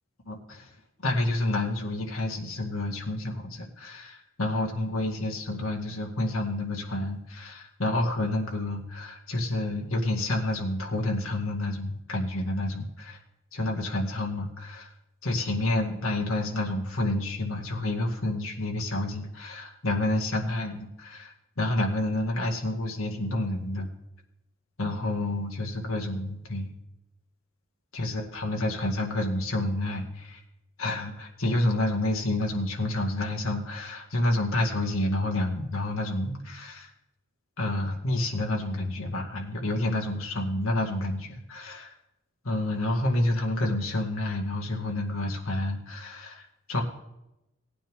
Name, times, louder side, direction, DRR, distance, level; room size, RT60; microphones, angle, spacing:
voice 1, 0.3-0.7 1.0-13.2 13.5-14.9 15.2-23.9 24.8-26.7 27.9-30.4 30.8-36.9 37.6-41.9 42.4-46.8, left 1 dB, 85° left, 1 dB, 2.1 m, -29 dB
18.0 x 9.3 x 3.7 m, 0.90 s
head